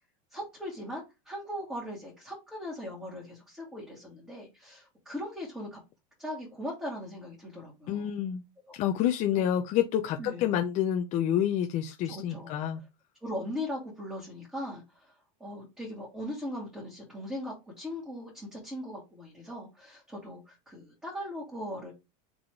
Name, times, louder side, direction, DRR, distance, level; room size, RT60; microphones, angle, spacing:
voice 1, 0.3-5.8 6.2-8.1 8.7-8.8 10.2-10.4 12.1-12.6 13.2-15.1 15.4-21.9, left 1 dB, 5° right, 2.2 m, -39 dB
voice 2, 7.9-8.4 8.7-12.8, left 10 dB, 40° left, 0.6 m, -28 dB
3.8 x 3.6 x 3.3 m
supercardioid pair, 150°, 18 cm